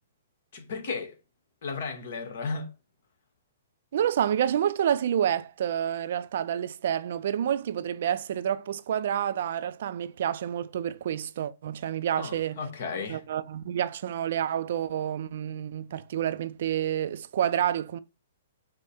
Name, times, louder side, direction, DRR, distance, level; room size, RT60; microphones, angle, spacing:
voice 1, 0.5-1.2 1.6-2.7 12.2-13.2, left 4 dB, 60° left, 1.1 m, -34 dB
voice 2, 3.9-12.6 13.1-18.0, right 10 dB, 60° right, 0.4 m, -28 dB
5.0 x 2.1 x 4.1 m
hypercardioid pair, 135°, 0 cm